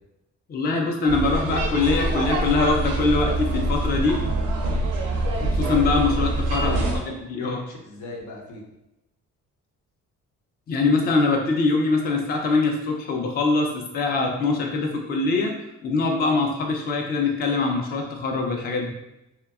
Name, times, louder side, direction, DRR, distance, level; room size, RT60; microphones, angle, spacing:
voice 1, 0.5-4.2 5.4-6.8 7.1-7.6 10.7-15.5 15.8-18.9, left 3 dB, 30° left, 1 dB, 0.4 m, -23 dB
sound 1, 1.1-7.0, right 2 dB, 85° right, 0.5 m, -25 dB
voice 2, 6.5-8.6, left 2 dB, 80° left, -1 dB, 0.7 m, -36 dB
2.6 x 2.1 x 2.4 m, 0.90 s
cardioid pair, 90°, 30 cm